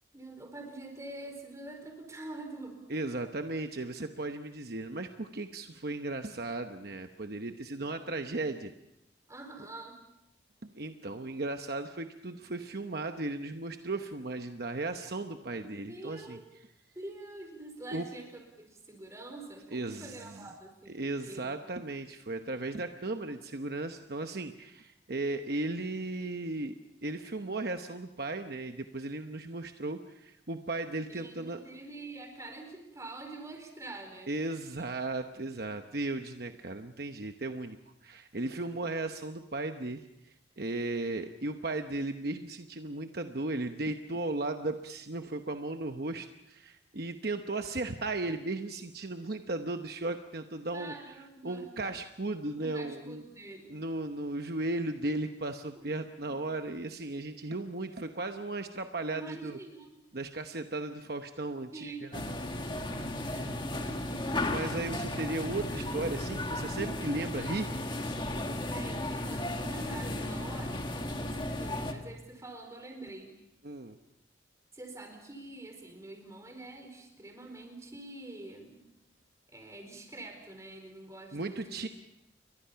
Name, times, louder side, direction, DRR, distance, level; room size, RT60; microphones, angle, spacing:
voice 1, 0.1-2.8 9.3-10.0 15.5-16.4 16.9-21.6 31.1-34.3 50.7-51.7 52.6-53.7 55.8-55.9 59.1-59.9 61.7-62.1 63.6-64.4 68.7-73.3 74.7-78.8 79.5-81.9, right 2 dB, 15° right, 4 dB, 4.5 m, -46 dB
voice 2, 2.9-8.7 10.6-16.4 17.9-18.1 19.7-20.5 20.9-26.7 27.0-31.6 34.3-37.8 38.0-50.9 51.4-53.2 53.7-59.6 60.1-62.2 64.5-67.7 73.6-74.0 81.3-81.9, right 2 dB, 55° right, 6 dB, 1.0 m, -36 dB
sound 1, 62.1-71.9, left 1 dB, 25° left, 1.9 m, -35 dB
29.5 x 23.0 x 5.8 m, 0.88 s
head